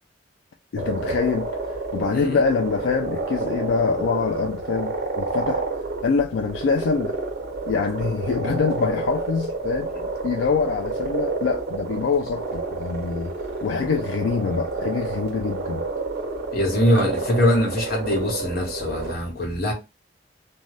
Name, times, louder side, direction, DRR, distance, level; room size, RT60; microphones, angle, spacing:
voice 1, 0.7-1.5 1.9-5.6 6.0-7.1 7.7-9.9 10.2-13.3 13.6-15.9, left 5 dB, 85° left, 0.3 m, -25 dB
sound 1, 0.8-19.1, right 3 dB, 55° right, 1.0 m, -29 dB
voice 2, 16.5-19.7, left 1 dB, 55° left, 1.1 m, -22 dB
2.6 x 2.2 x 3.1 m
head